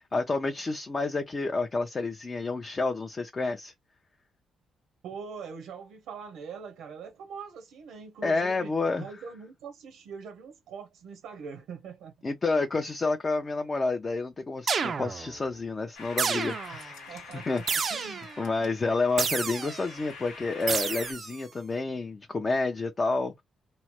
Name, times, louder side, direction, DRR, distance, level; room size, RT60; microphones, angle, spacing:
voice 1, 0.0-3.7 8.2-9.1 12.2-17.0 17.3-23.3, left 3 dB, 30° left, 0.5 m, -29 dB
voice 2, 5.0-8.7 9.0-12.1 17.1-18.3, right 6 dB, 85° right, 0.7 m, -43 dB
sound 1, 14.7-15.4 16.2-16.9 17.7-18.4 19.2-19.9 20.7-21.4, right 6 dB, 45° right, 0.3 m, -30 dB
sound 2, 15.9-21.1, left 4 dB, 90° left, 1.1 m, -46 dB
3.1 x 2.0 x 2.9 m
cardioid pair, 90°, 0 cm